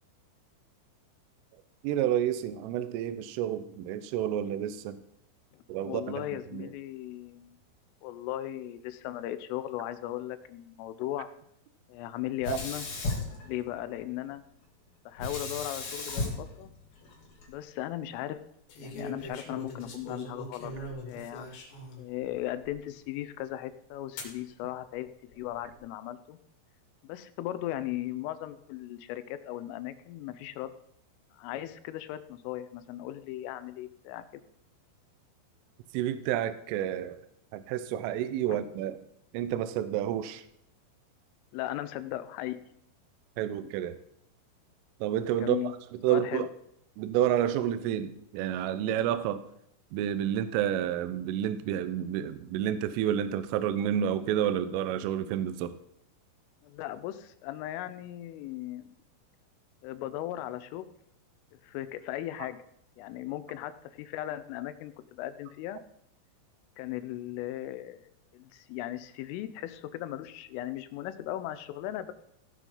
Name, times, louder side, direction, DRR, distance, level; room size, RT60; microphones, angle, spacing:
voice 1, 1.8-5.0 5.7-6.2 6.5-6.7 12.5-12.6 35.9-37.2 37.5-39.0 39.3-40.4 43.4-44.0 45.0-45.6 46.0-46.5 47.0-49.4 49.9-55.8, right 10 dB, 85° right, 3.3 m, -29 dB
voice 2, 5.8-7.6 8.0-11.3 11.9-12.9 13.4-14.4 15.1-16.7 17.5-18.4 18.8-20.7 21.1-21.5 22.0-25.1 25.4-26.4 27.0-30.7 31.3-34.4 38.5-38.6 41.5-42.6 45.3-45.7 46.1-46.5 56.6-58.9 59.8-60.9 61.6-62.6 63.0-65.8 66.8-68.1 68.3-72.1, left 13 dB, 80° left, 3.3 m, -37 dB
Sink (filling or washing), 12.4-14.1 15.2-17.5, left 2 dB, 45° left, 3.3 m, -35 dB
sound 1, 17.0-17.4 18.7-22.0 22.6-22.7 24.2-24.4 25.3-25.8, left 1 dB, 60° left, 4.5 m, -42 dB
17.0 x 6.1 x 5.5 m
omnidirectional pair, 5.8 m